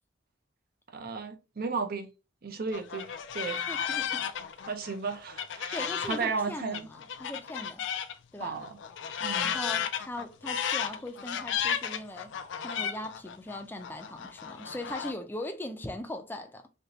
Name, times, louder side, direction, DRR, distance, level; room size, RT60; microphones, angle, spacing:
voice 1, 0.9-2.1 2.4-3.6 3.9-4.1 4.7-6.9 8.4-8.7 9.2-9.5, right 4 dB, 55° right, 0.5 m, -34 dB
sound 1, 2.7-8.1 8.4-15.1, left 8 dB, 70° left, 0.4 m, -34 dB
voice 2, 3.7-4.3 5.7-7.8 8.3-8.6 9.3-12.4 12.6-16.7, left 1 dB, 10° left, 0.4 m, -40 dB
3.2 x 2.9 x 2.8 m
head